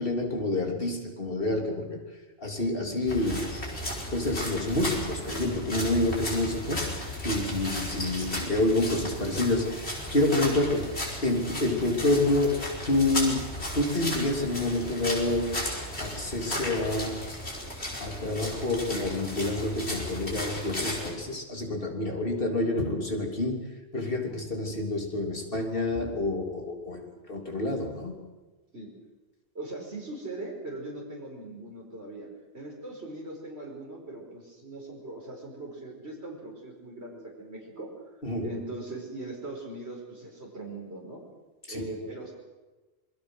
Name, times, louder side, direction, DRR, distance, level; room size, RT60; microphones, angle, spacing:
voice 1, 0.0-2.0 2.4-3.6 4.1-11.0 11.2-15.7 16.0-17.3 18.0-28.2 38.2-38.5 41.7-41.8, left 2 dB, 55° left, 2 dB, 3.7 m, -28 dB
sound 1, 3.1-21.1, left 1 dB, 70° left, 5.5 m, -35 dB
voice 2, 29.6-32.3 32.5-37.9 38.4-41.2 41.7-42.3, right 2 dB, 75° right, -2 dB, 5.2 m, -40 dB
27.0 x 22.5 x 6.5 m, 1.2 s
omnidirectional pair, 1.1 m